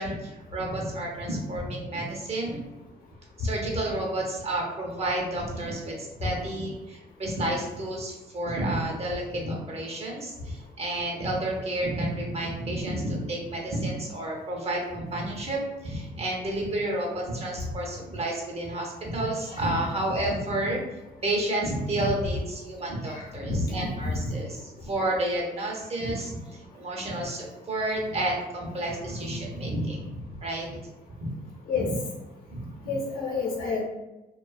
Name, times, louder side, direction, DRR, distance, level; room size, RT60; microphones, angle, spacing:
voice 1, 0.0-2.6 3.4-20.8 21.2-26.4 26.7-30.8 31.2-31.3 31.8-31.9 32.5-32.9, right 1 dB, 40° right, -1 dB, 0.8 m, -30 dB
voice 2, 23.1-23.6 23.9-24.2 31.7-31.9 32.9-33.8, left 4 dB, 60° left, -1 dB, 0.8 m, -29 dB
2.4 x 2.3 x 2.3 m, 1.0 s
supercardioid pair, 70°, 17 cm